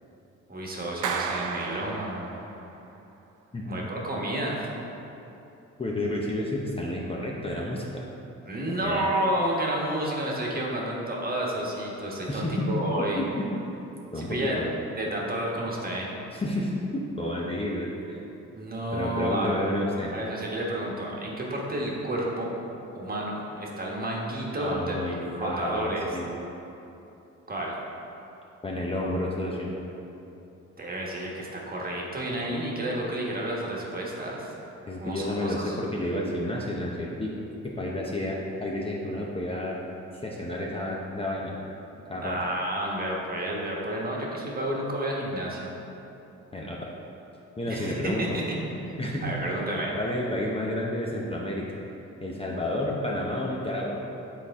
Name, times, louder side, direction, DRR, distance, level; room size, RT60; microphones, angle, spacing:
voice 1, 0.5-2.3 3.7-4.7 8.4-13.2 14.1-14.6 15.0-16.1 18.5-19.5 20.1-22.5 22.9-25.0 25.3-26.1 27.5-27.7 30.8-34.5 35.0-35.8 42.2-45.7 47.7-48.4 48.8-49.9, right 1 dB, 30° right, -3 dB, 1.3 m, -30 dB
Clapping, 1.0-2.7, right 6 dB, 80° right, 0.5 m, -32 dB
voice 2, 3.5-3.9 5.8-8.0 8.8-9.1 12.3-12.8 13.2-13.7 14.1-14.6 16.3-18.2 18.9-20.1 24.6-26.3 28.6-29.7 34.9-37.3 37.6-39.8 40.2-41.5 42.1-42.4 46.5-46.8 47.6-48.4 49.0-49.7 49.9-51.7 52.2-54.0, left 1 dB, 20° left, -3 dB, 0.7 m, -30 dB
7.5 x 4.2 x 3.6 m, 3.0 s
cardioid pair, 90°, 30 cm